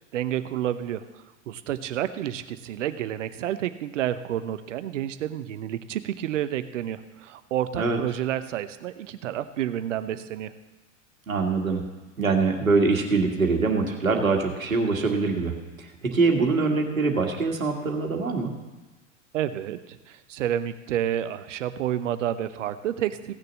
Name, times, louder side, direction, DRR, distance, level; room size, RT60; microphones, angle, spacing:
voice 1, 0.1-1.0 1.5-10.5 19.3-23.3, right 11 dB, 65° right, 12 dB, 0.9 m, -30 dB
voice 2, 11.3-11.8 12.2-18.5, right 4 dB, 85° right, 3 dB, 1.8 m, -24 dB
16.5 x 6.7 x 7.5 m, 1.2 s
figure-of-eight pair, 90°, 40 cm